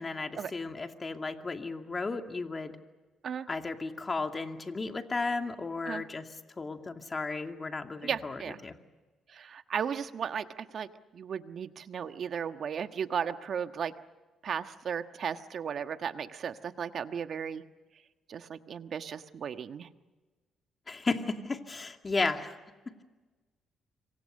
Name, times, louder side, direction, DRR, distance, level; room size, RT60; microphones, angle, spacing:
voice 1, 0.0-2.8 3.5-6.3 6.6-8.8 20.9-22.5 22.9-23.0, left 3 dB, 30° left, 5 dB, 2.4 m, -34 dB
voice 2, 8.0-8.6 9.3-10.9 11.1-13.9 14.4-17.6 18.3-19.9, right 7 dB, 55° right, 9 dB, 1.3 m, -35 dB
26.5 x 24.0 x 6.6 m, 1.3 s
cardioid pair, 90°, 0 cm